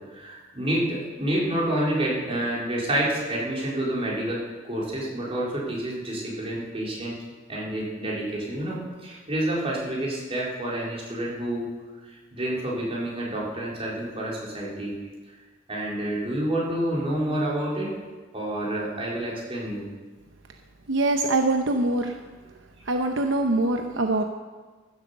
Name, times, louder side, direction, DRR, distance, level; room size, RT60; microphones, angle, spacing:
voice 1, 0.1-7.2 7.5-11.6 12.3-14.9 15.7-17.9 18.3-19.9, right 1 dB, 30° right, -5 dB, 4.0 m, -28 dB
voice 2, 20.9-22.1 22.9-24.2, right 2 dB, 75° right, 4 dB, 0.8 m, -23 dB
15.0 x 8.2 x 6.7 m, 1.4 s
head